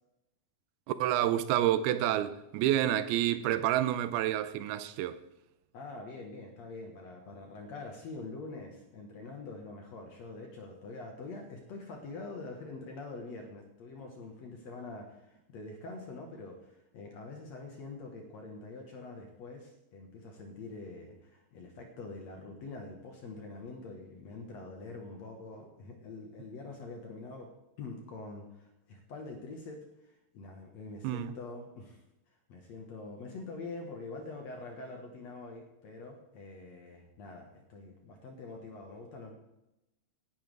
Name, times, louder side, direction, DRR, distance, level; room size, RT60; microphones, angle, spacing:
voice 1, 0.9-5.2 31.0-31.3, right 12 dB, 85° right, 2.6 m, -29 dB
voice 2, 5.7-27.5 27.8-32.0 32.5-39.3, left 3 dB, 60° left, 2.1 m, -45 dB
17.5 x 10.5 x 3.4 m
omnidirectional pair, 4.4 m